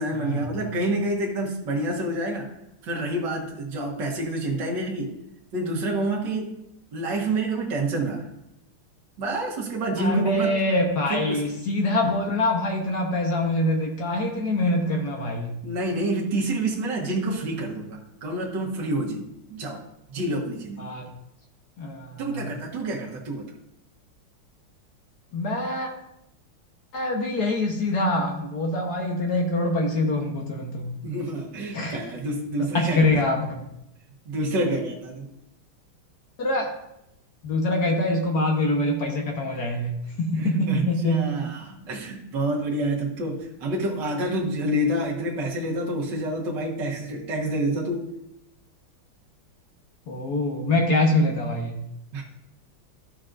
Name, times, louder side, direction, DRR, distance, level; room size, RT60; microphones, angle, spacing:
voice 1, 0.0-2.5 2.8-5.2 5.5-6.5 6.9-8.2 9.2-10.5 11.1-11.4 15.6-19.8 20.1-20.9 22.2-23.5 31.0-33.1 34.3-35.3 40.4-48.1 52.1-52.2, right 1 dB, 60° right, -2 dB, 2.0 m, -28 dB
voice 2, 10.0-15.6 20.8-21.0 21.8-22.5 25.3-25.9 26.9-30.9 31.7-32.0 32.7-33.6 36.4-36.7 37.4-41.3 50.1-51.8, left 1 dB, 55° left, 1 dB, 1.5 m, -24 dB
13.0 x 6.0 x 2.6 m, 0.83 s
omnidirectional pair, 2.3 m